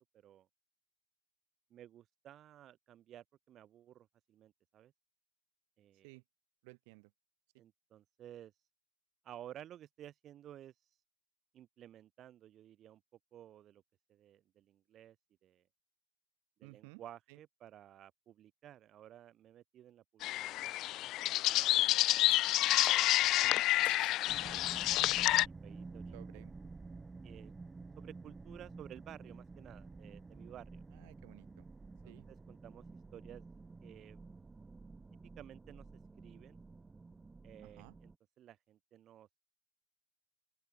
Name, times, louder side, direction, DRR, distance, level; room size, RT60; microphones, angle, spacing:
voice 1, 1.7-4.9 5.8-6.1 7.6-8.5 9.2-10.7 11.5-13.0 13.3-13.8 14.1-15.2 15.4-15.6 16.6-20.3 20.6-22.2 22.6-23.0 24.9-26.5 27.2-27.5 28.0-30.8 32.0-32.8 33.1-33.4 33.8-34.2 35.4-35.8 36.2-36.6 37.4-38.1 38.4-39.4, right 11 dB, 30° right, 2.7 m, -55 dB
voice 2, 6.6-7.1 16.6-17.0 17.3-17.4 23.4-23.7 24.3-24.6 26.1-26.5 30.9-31.7 32.1-32.3 37.6-38.0, right 32 dB, 45° right, 3.6 m, -55 dB
sound 1, 20.2-25.5, left 16 dB, 35° left, 0.3 m, -29 dB
sound 2, 22.3-23.0 23.8-24.2 24.9-25.3, left 5 dB, 80° left, 2.0 m, -52 dB
sound 3, 24.3-38.1, right 3 dB, 10° right, 7.6 m, -51 dB
open air
figure-of-eight pair, 105°, 0 cm